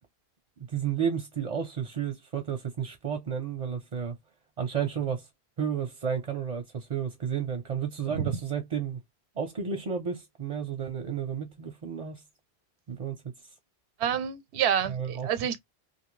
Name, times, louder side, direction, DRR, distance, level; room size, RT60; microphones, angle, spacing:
voice 1, 0.6-4.2 4.6-5.3 5.6-9.0 9.4-12.2 12.9-13.3 14.9-15.3, right 7 dB, 45° right, 0.6 m, -32 dB
voice 2, 14.0-15.6, right 8 dB, 90° right, 0.8 m, -28 dB
2.6 x 2.5 x 3.0 m
omnidirectional pair, 1.1 m